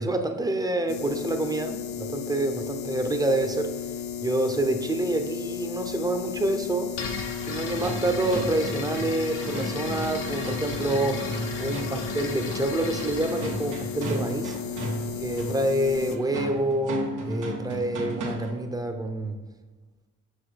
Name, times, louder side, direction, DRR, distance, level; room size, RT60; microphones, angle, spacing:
voice 1, 0.0-3.7 4.2-7.0 7.4-11.3 11.6-14.6 15.2-19.4, right 1 dB, 10° right, 6 dB, 0.7 m, -27 dB
sound 1, 0.9-16.2, left 8 dB, 50° left, 0.6 m, -35 dB
sound 2, 6.9-14.7, left 4 dB, 85° left, 1.2 m, -38 dB
sound 3, 7.4-18.7, right 1 dB, 75° right, 1.4 m, -35 dB
5.5 x 5.0 x 4.1 m, 1.3 s
cardioid pair, 90°, 30 cm